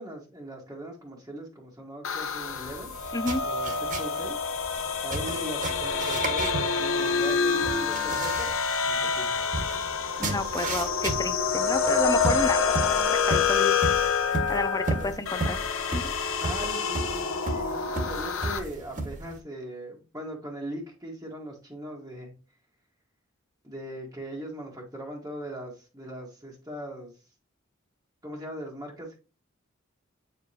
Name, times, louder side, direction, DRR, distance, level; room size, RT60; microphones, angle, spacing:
voice 1, 0.0-3.2 3.4-4.4 5.0-8.5 8.8-9.4 15.0-15.3 16.4-22.3 23.6-27.1 28.2-29.2, right 1 dB, 15° right, 1.5 m, -39 dB
sound 1, 2.0-18.6, left 5 dB, 75° left, 1.0 m, -27 dB
sound 2, 2.5-19.4, right 2 dB, 40° right, 1.6 m, -35 dB
voice 2, 10.2-13.8 14.5-15.6 15.9-16.1, left 2 dB, 20° left, 0.6 m, -31 dB
8.6 x 5.0 x 2.8 m
head